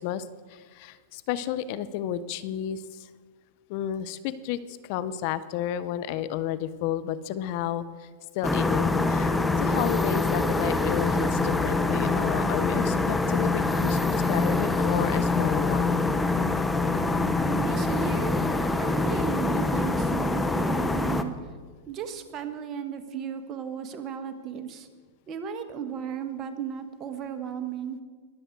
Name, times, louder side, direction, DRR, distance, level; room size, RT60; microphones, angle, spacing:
voice 1, 0.0-2.8 3.7-8.1 8.3-16.0, left 11 dB, 55° left, 15 dB, 0.7 m, -32 dB
sound 1, 8.4-21.2, left 3 dB, 10° left, 0.9 m, -25 dB
voice 2, 17.4-18.4 18.8-21.3 21.9-24.9 25.3-28.0, right 7 dB, 35° right, 7 dB, 1.4 m, -35 dB
21.5 x 7.9 x 4.6 m, 1.5 s
hypercardioid pair, 115°, 0 cm